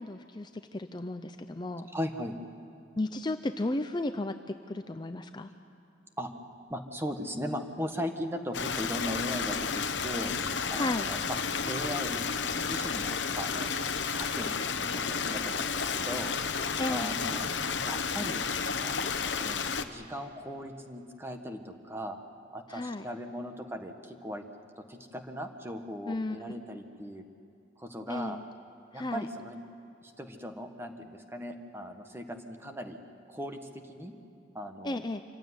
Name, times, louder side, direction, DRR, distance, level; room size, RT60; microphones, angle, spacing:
voice 1, 0.0-1.9 3.0-4.4 4.7-5.5 10.8-11.1 16.8-17.2 22.7-23.1 26.1-26.4 28.1-28.4 28.9-29.3 34.8-35.2, left 2 dB, 25° left, 8 dB, 0.5 m, -34 dB
voice 2, 1.9-2.4 6.2-6.3 6.7-10.3 10.7-11.4 11.7-12.2 12.6-13.7 14.1-14.6 14.8-16.4 16.9-17.5 17.8-18.4 18.8-22.2 22.5-24.4 24.8-27.2 27.8-28.4 28.9-29.6 30.0-33.0 33.3-34.1 34.5-35.0, equal, 15° right, 6 dB, 1.3 m, -38 dB
Stream, 8.5-19.8, left 5 dB, 70° left, 1.0 m, -32 dB
26.0 x 15.5 x 9.6 m, 2.8 s
head